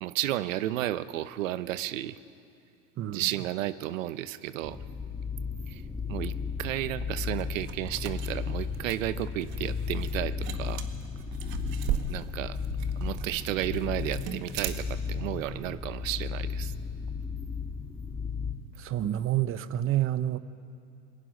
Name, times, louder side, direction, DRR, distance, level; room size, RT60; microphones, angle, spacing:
voice 1, 0.0-2.2 3.1-4.8 5.7-5.8 6.1-10.8 12.1-12.6 13.0-16.7, right 14 dB, 90° right, 15 dB, 0.9 m, -33 dB
sound 1, 4.6-18.5, left 5 dB, 10° left, 2.4 m, -34 dB
sound 2, 7.4-15.1, right 8 dB, 60° right, 1.8 m, -38 dB
voice 2, 18.8-20.4, right 13 dB, 35° right, 14 dB, 0.9 m, -28 dB
28.0 x 21.0 x 6.5 m, 2.4 s
supercardioid pair, 125°, 38 cm